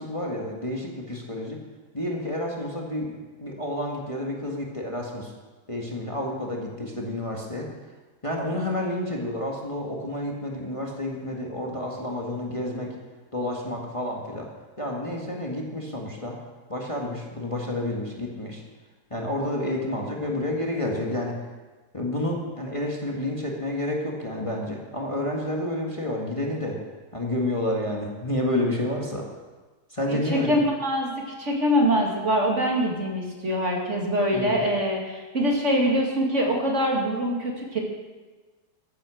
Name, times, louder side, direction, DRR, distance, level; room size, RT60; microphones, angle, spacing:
voice 1, 0.0-1.6 1.9-5.3 5.7-7.7 8.2-12.9 13.3-14.5 14.8-16.4 16.7-18.6 19.1-21.3 21.9-26.8 27.1-29.2 29.9-30.6 34.3-34.6, left 1 dB, 20° left, -1 dB, 1.8 m, -30 dB
voice 2, 30.1-31.1 31.4-37.8, equal, 45° right, 0 dB, 2.5 m, -24 dB
14.0 x 10.5 x 6.4 m, 1.3 s
omnidirectional pair, 1.8 m